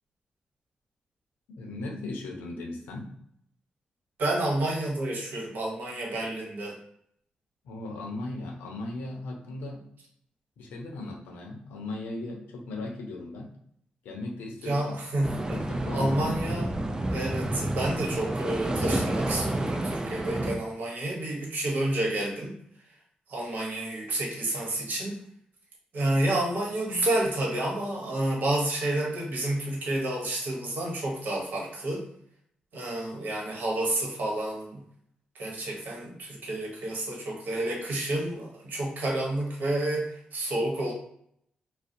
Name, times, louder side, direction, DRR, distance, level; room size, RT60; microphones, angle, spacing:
voice 1, 1.5-3.1 7.6-9.9 10.6-13.5 14.0-15.0 15.4-16.4, left 2 dB, 85° left, 1 dB, 0.5 m, -37 dB
voice 2, 4.2-6.8 14.6-15.6 15.9-16.7 17.1-22.6 23.3-25.2 25.9-32.0 32.7-34.8 35.3-40.9, right 1 dB, 70° right, -2 dB, 0.9 m, -29 dB
sound 1, 15.2-20.6, right 1 dB, 20° right, 0.4 m, -30 dB
2.4 x 2.0 x 2.6 m, 0.69 s
supercardioid pair, 40°, 3 cm